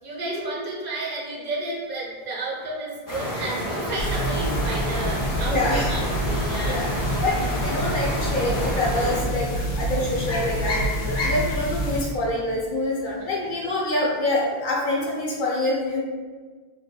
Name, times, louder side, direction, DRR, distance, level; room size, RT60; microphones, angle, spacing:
voice 1, 0.0-7.0 7.3-7.5 13.4-13.5, right 2 dB, 60° right, -4 dB, 0.9 m, -32 dB
sound 1, 3.1-9.2, equal, 25° left, 0.6 m, -29 dB
sound 2, 4.0-12.0, equal, 85° left, 0.9 m, -27 dB
voice 2, 5.5-5.9 6.7-9.5 9.8-16.0, left 2 dB, 60° left, -3 dB, 0.7 m, -26 dB
2.9 x 2.8 x 2.3 m, 1.5 s
omnidirectional pair, 1.0 m